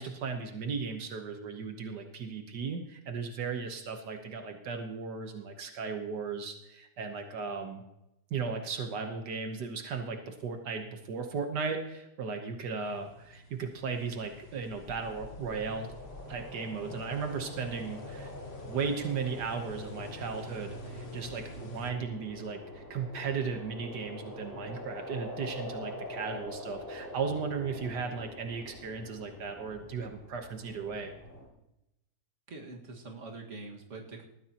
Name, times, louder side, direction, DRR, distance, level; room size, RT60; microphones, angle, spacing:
voice 1, 0.0-7.8 8.3-15.9 16.3-18.3 18.7-31.1, right 5 dB, 80° right, 5 dB, 1.7 m, -36 dB
sound 1, 12.8-21.9, left 3 dB, 45° left, 1.3 m, -48 dB
sound 2, 14.5-31.4, left 1 dB, 10° left, 5.2 m, -45 dB
voice 2, 32.5-34.3, right 3 dB, 45° right, 0 dB, 2.1 m, -44 dB
19.5 x 14.0 x 3.0 m, 0.87 s
omnidirectional pair, 1.8 m